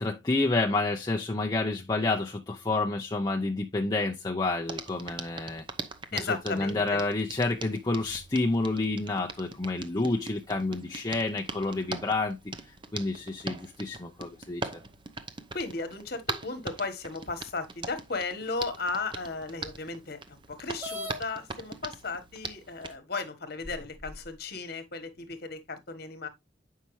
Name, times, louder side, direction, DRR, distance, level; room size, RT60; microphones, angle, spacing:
voice 1, 0.0-5.6 6.1-12.4 12.9-14.7, left 2 dB, 20° left, 0.7 m, -29 dB
Hands, 4.7-23.0, right 3 dB, 25° right, 0.7 m, -42 dB
voice 2, 6.1-7.0 15.5-26.3, left 3 dB, 55° left, 1.3 m, -35 dB
sound 1, 20.8-21.2 22.2-22.3 22.9-23.0 23.6-24.3, left 1 dB, 10° right, 1.3 m, -38 dB
8.3 x 5.6 x 3.1 m
head